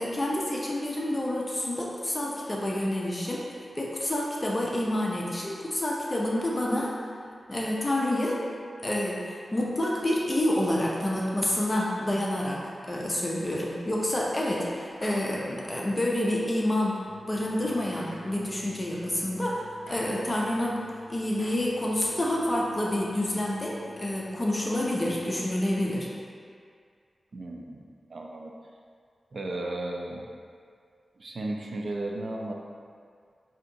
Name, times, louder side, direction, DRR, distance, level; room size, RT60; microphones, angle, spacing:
voice 1, 0.0-7.0 7.5-8.4 8.8-26.1, left 1 dB, 25° left, -4 dB, 0.5 m, -28 dB
sound 1, 14.1-15.3 15.8-15.9 16.8-17.2 17.8-18.3 18.9-19.0 19.6-20.6 20.9-21.7 22.2-22.3, equal, 40° right, 1.1 m, -48 dB
sound 2, 17.0-25.8, equal, ahead, 1.4 m, -52 dB
voice 2, 27.3-27.8 28.1-28.5 29.3-30.3 31.2-32.5, right 2 dB, 60° right, 0 dB, 0.5 m, -34 dB
5.6 x 2.8 x 2.6 m, 2.1 s
wide cardioid pair, 85°, 0 cm